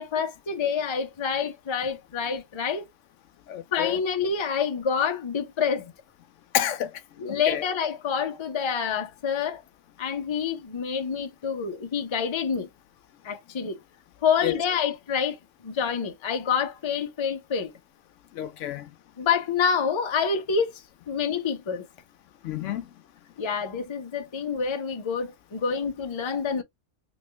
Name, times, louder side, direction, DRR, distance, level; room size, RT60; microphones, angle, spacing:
voice 1, 0.0-2.8 3.7-5.9 7.2-9.6 10.0-12.7 13.2-13.8 14.2-15.4 15.6-17.7 19.2-21.9 23.4-26.6, left 6 dB, 30° left, 0.5 m, -27 dB
voice 2, 3.5-4.0 6.5-6.9 7.3-7.6 14.4-14.6 18.3-18.9 22.4-22.9, left 11 dB, 80° left, 0.9 m, -29 dB
3.1 x 3.1 x 3.1 m
omnidirectional pair, 1.3 m